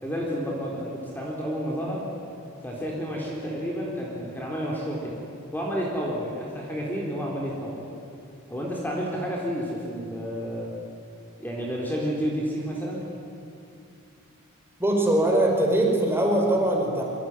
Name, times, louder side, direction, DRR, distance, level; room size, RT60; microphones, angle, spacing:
voice 1, 0.0-2.0 2.6-5.2 5.5-7.8 8.5-10.7 11.4-13.0, equal, 10° left, -3 dB, 4.1 m, -30 dB
voice 2, 14.8-17.0, right 1 dB, 10° right, 0 dB, 5.0 m, -22 dB
26.5 x 24.5 x 9.3 m, 2.6 s
head